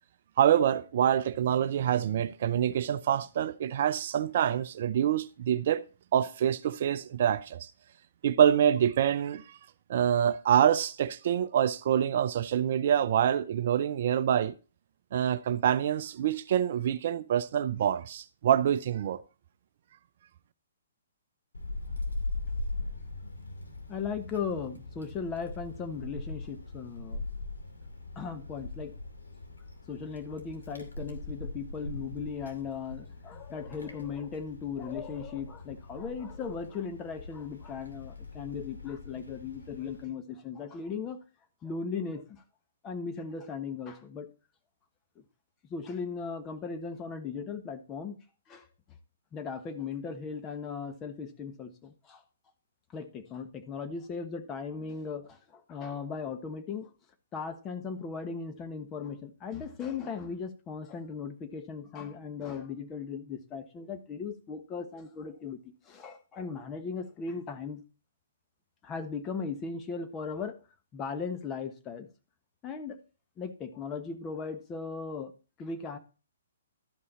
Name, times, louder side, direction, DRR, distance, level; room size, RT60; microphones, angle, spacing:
voice 1, 0.4-5.8 6.1-7.7 8.2-9.6 9.9-14.5 15.1-19.2, right 9 dB, 50° right, 0.5 m, -26 dB
Wind, 21.5-40.1, left 2 dB, 80° left, 2.5 m, -41 dB
voice 2, 23.9-27.2 28.1-28.9 29.9-41.2 41.6-42.4 42.8-44.3 45.6-48.2 48.5-48.7 49.3-52.2 52.9-56.9 57.3-67.8 68.8-70.6 70.9-72.1 72.6-73.0 73.4-75.3 75.6-76.0, left 5 dB, 20° left, 1.2 m, -37 dB
12.5 x 5.5 x 4.1 m
figure-of-eight pair, 125°, 0 cm